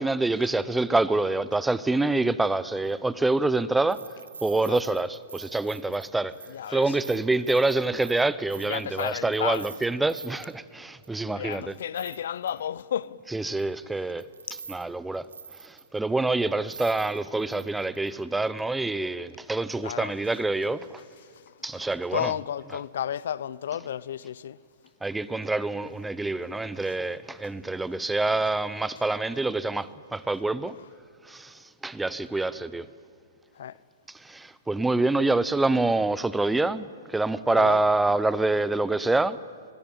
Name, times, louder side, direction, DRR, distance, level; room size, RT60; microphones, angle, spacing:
voice 1, 0.0-4.0 4.4-6.3 6.7-11.8 13.3-14.2 14.7-15.3 15.6-21.0 21.6-22.3 25.0-30.8 31.2-32.9 34.1-39.4, right 2 dB, 5° right, 0.7 m, -26 dB
sound 1, 2.8-2.9 3.9-10.5 11.0-11.1 11.5-12.8 13.6-13.7 14.2-14.8 15.1-16.0 16.4-16.5 16.7-18.1 18.5-18.6, right 5 dB, 90° right, 1.8 m, -45 dB
voice 2, 6.5-6.9 8.6-9.7 11.3-13.2 19.8-20.1 21.7-21.8 22.1-24.6 33.6-33.8 37.5-37.8, left 9 dB, 70° left, 0.7 m, -32 dB
25.0 x 21.0 x 8.8 m
hypercardioid pair, 130°, 0 cm